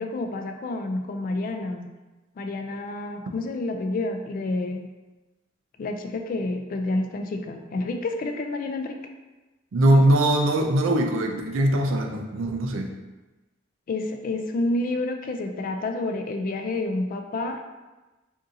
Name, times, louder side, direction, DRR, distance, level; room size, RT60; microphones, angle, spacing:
voice 1, 0.0-1.9 2.4-4.8 5.8-9.0 13.9-17.6, left 2 dB, 45° left, 5 dB, 0.3 m, -29 dB
voice 2, 9.7-12.9, right 1 dB, 90° right, 3 dB, 0.4 m, -21 dB
2.6 x 2.6 x 3.7 m, 1.1 s
head